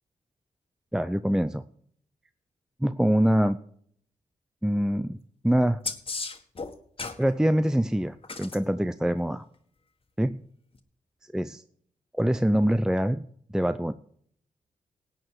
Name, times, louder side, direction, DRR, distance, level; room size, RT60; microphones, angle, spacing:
voice 1, 0.9-1.6 2.8-3.6 4.6-5.2 5.4-5.8 7.2-9.4 10.2-10.4 11.3-11.5 12.1-13.3 13.5-13.9, equal, 5° right, 12 dB, 0.6 m, -24 dB
sound 1, 5.8-7.2 8.2-8.6 10.7-10.8, left 4 dB, 40° left, 1.8 m, -34 dB
17.0 x 9.0 x 4.8 m, 0.63 s
cardioid pair, 65°, 15 cm